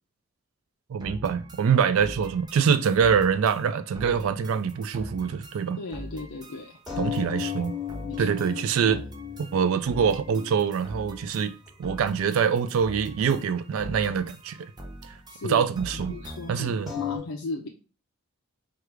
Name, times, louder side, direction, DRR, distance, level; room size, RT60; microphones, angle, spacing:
voice 1, 0.9-5.8 7.0-7.7 8.2-9.0 9.4-11.5 11.8-14.6 15.1-15.2 15.5-16.1 16.5-16.9, right 7 dB, 65° right, 0.3 m, -24 dB
sound 1, 1.0-16.7, equal, 20° right, 0.5 m, -43 dB
voice 2, 5.8-6.8 8.0-8.4 15.3-15.7 15.9-17.7, left 2 dB, 75° left, 0.6 m, -37 dB
sound 2, 6.9-11.9 12.2-12.3 12.6-12.7 13.1-13.2 16.9-17.2, left 9 dB, ahead, 1.3 m, -35 dB
4.6 x 2.4 x 4.6 m
head